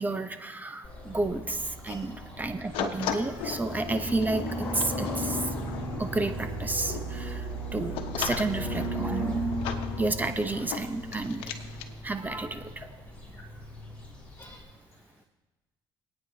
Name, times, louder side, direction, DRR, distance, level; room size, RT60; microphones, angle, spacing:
voice 1, 0.0-5.5 6.0-9.4 10.0-11.5 12.0-12.8, right 2 dB, 20° right, 8 dB, 0.9 m, -31 dB
sound 1, 0.8-14.6, right 1 dB, 15° left, 4.9 m, -36 dB
sound 2, 2.7-11.9, left 7 dB, 85° left, 1.0 m, -38 dB
voice 2, 13.1-13.6 14.0-15.2, left 2 dB, 30° left, 0 dB, 1.4 m, -53 dB
23.5 x 9.2 x 2.9 m, 1.2 s
cardioid pair, 85°, 9 cm